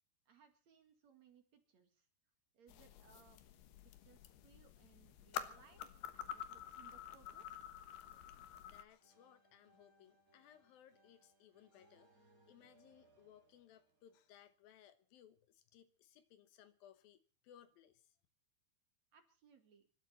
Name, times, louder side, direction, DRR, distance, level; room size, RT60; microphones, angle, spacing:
voice 1, 0.3-2.1 2.5-3.4 3.8-5.8 6.1-7.6 19.1-19.9, right 7 dB, 50° right, 2.8 m, -67 dB
sound 1, 2.7-8.8, left 10 dB, 90° left, 3.3 m, -49 dB
voice 2, 8.7-12.1 12.5-18.1, left 10 dB, 75° left, 2.7 m, -64 dB
sound 2, 9.0-14.8, right 2 dB, 25° right, 2.9 m, -72 dB
25.0 x 12.5 x 4.2 m
omnidirectional pair, 4.5 m